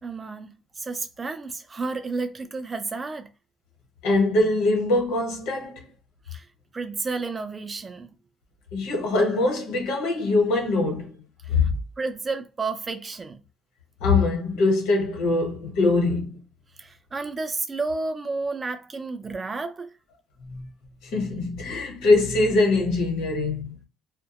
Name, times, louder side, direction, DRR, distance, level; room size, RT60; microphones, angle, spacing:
voice 1, 0.0-3.3 6.3-6.5 6.7-8.1 11.6-11.7 12.0-13.4 16.8-19.9, right 3 dB, 20° right, 0.3 m, -31 dB
voice 2, 4.0-5.8 8.7-11.1 11.5-11.7 14.0-16.3 20.5-20.7 21.1-23.7, left 2 dB, 90° left, 0.9 m, -22 dB
2.2 x 2.1 x 2.8 m
cardioid pair, 150°, 0 cm